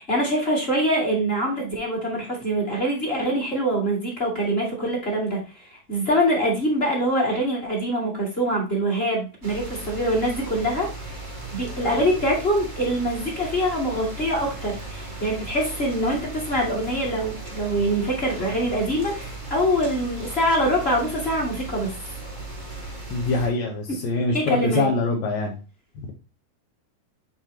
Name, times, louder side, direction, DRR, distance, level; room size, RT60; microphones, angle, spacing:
voice 1, 0.0-21.9 24.3-24.9, equal, 20° left, -1 dB, 1.7 m, -24 dB
sound 1, 9.4-23.5, right 2 dB, 60° right, 0.4 m, -36 dB
voice 2, 23.1-25.6 26.0-26.1, left 3 dB, 65° left, 0 dB, 1.9 m, -24 dB
9.0 x 4.4 x 2.8 m, 0.33 s
omnidirectional pair, 4.3 m